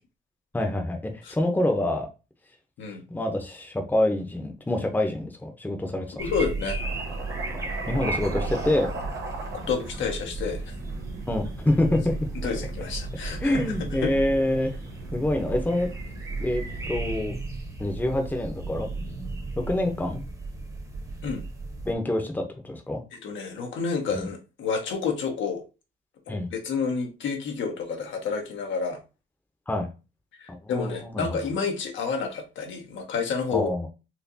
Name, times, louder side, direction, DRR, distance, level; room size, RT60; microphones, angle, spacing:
voice 1, 0.5-2.1 3.1-6.2 7.9-8.9 11.3-12.1 13.4-14.7 15.1-15.9 16.4-17.4 17.8-18.9 19.5-20.2 21.8-23.0 24.1-24.3 26.3-26.5 29.7-29.9 30.5-31.4 33.5-33.9, left 1 dB, 10° left, 4 dB, 0.8 m, -26 dB
voice 2, 6.2-6.8 9.5-10.7 12.4-14.2 21.2-21.4 23.1-25.6 26.3-29.0 30.4-33.7, left 5 dB, 75° left, 3 dB, 1.0 m, -30 dB
sound 1, 6.2-21.9, right 3 dB, 15° right, 1.0 m, -34 dB
sound 2, 6.8-17.2, right 2 dB, 85° right, 1.1 m, -40 dB
4.3 x 2.5 x 2.7 m, 0.29 s
cardioid pair, 90°, 20 cm